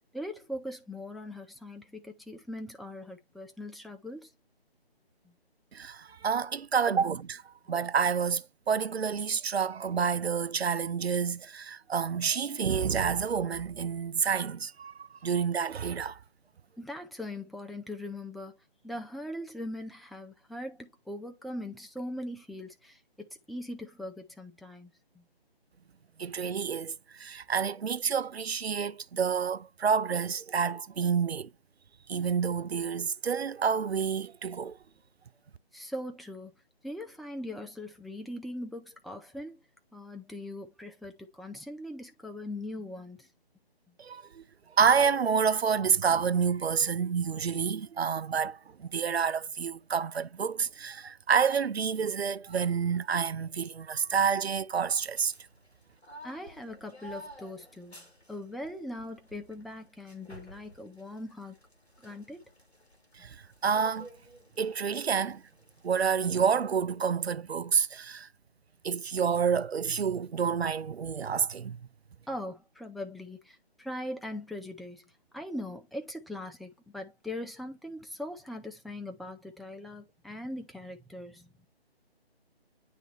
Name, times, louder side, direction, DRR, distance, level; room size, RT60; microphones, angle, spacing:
voice 1, 0.1-4.3 16.8-18.5 18.8-24.9 25.2-25.3 35.7-36.5 36.8-39.6 39.9-43.3 56.2-58.0 58.3-61.6 62.0-62.4 72.3-75.0 75.3-81.5, left 1 dB, ahead, 0.3 m, -40 dB
voice 2, 5.7-16.2 26.2-31.5 32.1-34.8 44.0-44.4 44.7-55.3 63.1-64.1 64.6-65.4 65.8-68.3 68.8-71.9, right 6 dB, 75° right, 0.5 m, -29 dB
sound 1, 54.8-66.4, equal, 90° left, 2.3 m, -53 dB
9.3 x 3.3 x 3.2 m
figure-of-eight pair, 150°, 32 cm